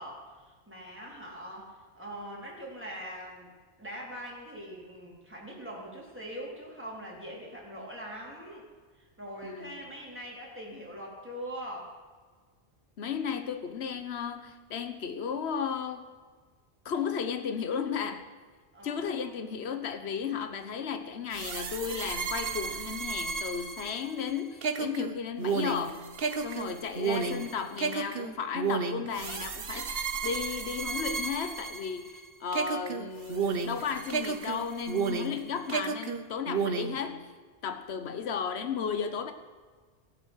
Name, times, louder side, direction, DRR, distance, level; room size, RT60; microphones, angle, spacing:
voice 1, 0.0-3.5 3.8-8.7 9.0-11.9 18.7-19.2 26.5-27.1, equal, 10° right, -4 dB, 4.1 m, -42 dB
voice 2, 9.4-9.9 13.0-16.0 16.8-18.3 18.8-26.0 26.4-29.9 30.2-37.3 37.6-39.3, left 7 dB, 70° left, 8 dB, 1.3 m, -34 dB
sound 1, 21.3-32.2 32.5-35.4 35.7-37.0, right 5 dB, 60° right, 1.2 m, -32 dB
22.5 x 7.9 x 6.4 m, 1.5 s
omnidirectional pair, 1.1 m